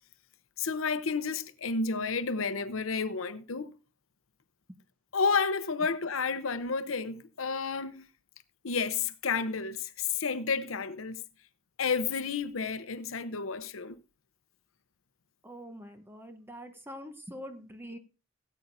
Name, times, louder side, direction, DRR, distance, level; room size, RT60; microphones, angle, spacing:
voice 1, 0.6-3.7 5.1-8.1 8.6-11.2 11.8-13.9, left 5 dB, 90° left, 0.8 m, -31 dB
voice 2, 15.4-18.0, equal, 10° right, 1.0 m, -44 dB
17.5 x 8.5 x 2.7 m
head